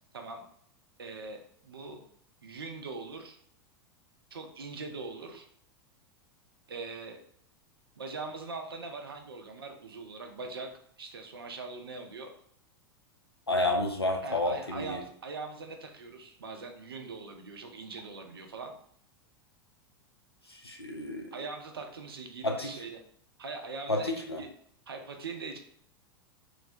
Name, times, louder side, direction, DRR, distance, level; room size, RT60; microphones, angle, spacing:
voice 1, 1.0-2.0 2.4-3.4 4.3-5.5 6.7-7.2 8.0-10.7 11.0-12.3 14.2-18.7 21.3-23.0 23.4-24.5 24.9-25.6, right 4 dB, 70° right, 4 dB, 0.5 m, -41 dB
voice 2, 13.5-15.0 20.6-21.3 22.4-22.7 23.9-24.4, left 2 dB, 90° left, 2 dB, 0.4 m, -30 dB
3.0 x 2.0 x 2.6 m, 0.63 s
figure-of-eight pair, 90°, 13 cm